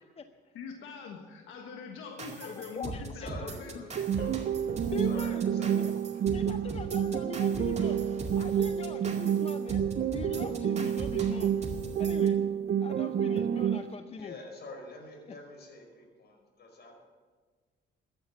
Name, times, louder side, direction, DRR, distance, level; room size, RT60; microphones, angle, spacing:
voice 1, 0.0-0.5 2.4-3.3 4.9-5.4 5.7-5.8 6.3-8.0 8.4-11.5 12.0-12.4 12.8-14.3, left 4 dB, 30° left, 8 dB, 0.7 m, -42 dB
voice 2, 0.5-4.4, left 6 dB, 85° left, 3 dB, 1.4 m, -43 dB
sound 1, 2.2-12.3, right 3 dB, 35° right, 2.2 m, -40 dB
voice 3, 3.0-4.2 4.6-5.8 6.1-6.2 14.1-17.0, left 2 dB, 55° left, 2 dB, 4.9 m, -47 dB
sound 2, 4.0-14.0, right 9 dB, 50° right, 0.5 m, -29 dB
14.0 x 9.9 x 7.1 m, 1.5 s
cardioid pair, 90°, 20 cm